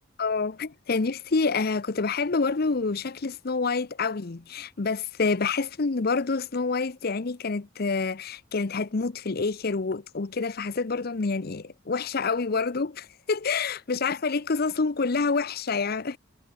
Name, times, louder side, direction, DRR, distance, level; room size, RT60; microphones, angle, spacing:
voice 1, 0.2-16.2, left 4 dB, 55° left, 0.7 m, -27 dB
head